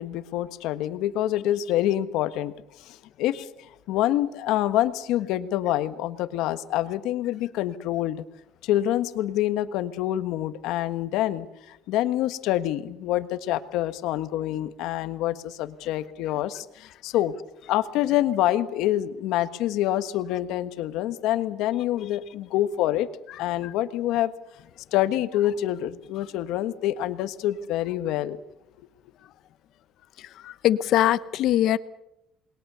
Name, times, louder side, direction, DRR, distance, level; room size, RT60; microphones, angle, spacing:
voice 1, 0.0-3.5 3.9-8.2 8.6-17.3 17.7-23.1 23.4-24.3 24.9-28.4, left 13 dB, 80° left, 12 dB, 1.4 m, -26 dB
voice 2, 30.4-31.8, left 12 dB, 55° left, 15 dB, 0.9 m, -22 dB
28.5 x 21.5 x 6.9 m, 0.84 s
cardioid pair, 165°, 0 cm